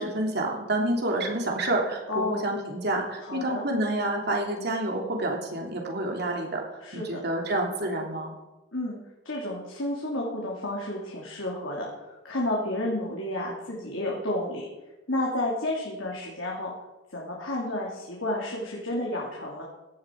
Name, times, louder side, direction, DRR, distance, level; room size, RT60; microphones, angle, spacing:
voice 1, 0.0-6.6 6.9-8.3, right 1 dB, 50° right, 1 dB, 3.2 m, -28 dB
voice 2, 2.1-2.5 3.2-3.6 6.8-7.2 8.7-9.0 9.2-14.7 15.1-16.7 17.1-19.6, left 1 dB, 70° left, -4 dB, 3.0 m, -31 dB
17.0 x 11.5 x 4.8 m, 1.1 s
head